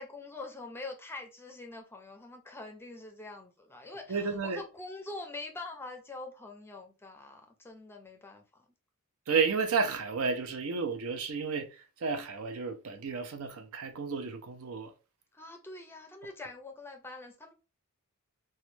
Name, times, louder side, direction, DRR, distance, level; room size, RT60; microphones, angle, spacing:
voice 1, 0.0-8.7 15.3-17.5, left 2 dB, 10° left, 0.5 m, -44 dB
voice 2, 4.1-4.6 9.3-14.9, right 5 dB, 70° right, 0.5 m, -32 dB
3.0 x 2.2 x 3.1 m
head